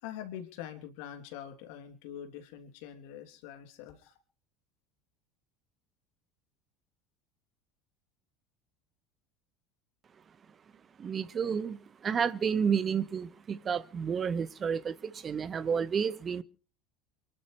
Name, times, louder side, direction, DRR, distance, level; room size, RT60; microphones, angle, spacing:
voice 1, 0.0-4.1, left 10 dB, 65° left, 3.1 m, -44 dB
voice 2, 11.0-16.4, right 7 dB, 30° right, 1.4 m, -31 dB
28.5 x 12.0 x 3.3 m
hypercardioid pair, 75°, 0 cm